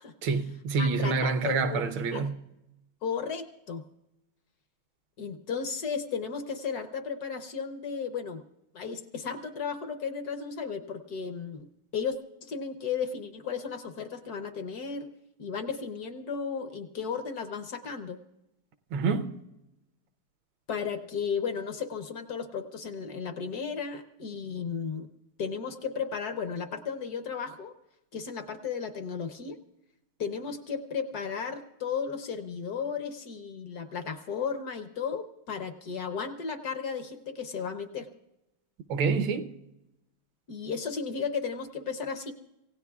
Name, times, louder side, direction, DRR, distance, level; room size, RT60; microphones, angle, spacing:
voice 1, 0.2-2.4 18.9-19.4 38.9-39.5, right 4 dB, 75° right, 1.6 m, -27 dB
voice 2, 0.8-2.3 3.0-3.8 5.2-8.4 8.7-11.7 11.9-15.1 15.4-18.2 20.7-25.1 25.4-27.7 28.1-29.6 30.2-38.1 40.5-42.3, left 6 dB, 60° left, 1.2 m, -34 dB
27.0 x 16.5 x 2.4 m
omnidirectional pair, 2.2 m